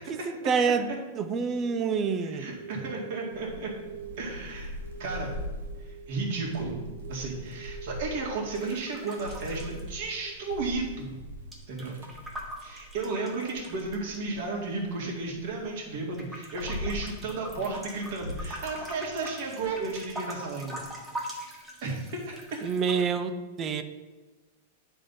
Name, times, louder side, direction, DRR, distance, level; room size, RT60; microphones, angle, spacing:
voice 1, 0.1-2.5 22.6-23.8, right 5 dB, 20° right, 10 dB, 0.4 m, -27 dB
sound 1, 1.5-10.3, right 6 dB, 35° left, 1.1 m, -47 dB
voice 2, 2.2-3.7 4.2-4.7 5.0-5.3 5.9-6.8 7.1-11.2 11.7-11.9 12.6-20.8 21.8-22.4, right 3 dB, 50° right, -2 dB, 2.0 m, -33 dB
Thunder / Rain, 3.3-13.0 13.5-15.4 16.0-20.8, left 1 dB, 90° right, 1.1 m, -42 dB
sound 2, 8.5-10.6 10.8-14.2 14.8-15.8 16.1-23.0, equal, 5° right, 0.9 m, -43 dB
8.8 x 3.5 x 5.4 m, 1.3 s
supercardioid pair, 165°, 0 cm